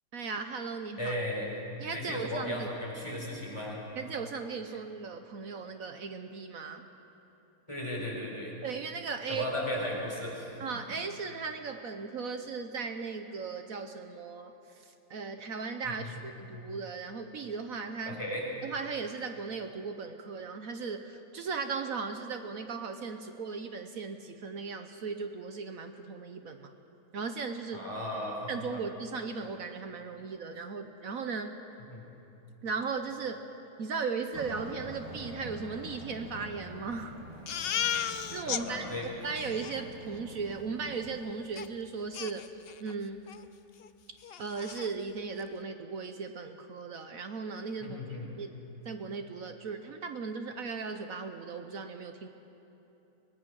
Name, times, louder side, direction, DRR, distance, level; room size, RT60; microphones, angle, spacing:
voice 1, 0.1-1.1 1.8-2.7 4.0-6.9 8.6-9.5 10.6-18.2 18.6-26.7 27.1-27.8 28.5-31.6 32.6-33.5 33.8-37.2 37.8-38.0 38.3-38.9 39.2-43.2 44.4-48.0 48.4-48.6 48.8-52.3, right 5 dB, 60° right, 7 dB, 1.2 m, -37 dB
voice 2, 1.0-1.5 1.9-3.8 7.7-8.6 9.3-10.5 15.8-16.2 18.0-18.4 27.7-28.8 31.9-32.1 38.5-39.1 47.8-48.3, left 1 dB, 15° left, -3 dB, 4.4 m, -36 dB
Aircraft, 34.3-41.2, equal, 25° right, 1.6 m, -46 dB
Crying sobbing, 37.5-38.6 39.0-39.1 39.4-39.7 41.6-41.7 42.1-42.9 43.3-43.4 43.8-43.9 44.2-44.9, left 9 dB, 75° left, 0.5 m, -34 dB
23.5 x 19.5 x 6.3 m, 3.0 s
omnidirectional pair, 1.8 m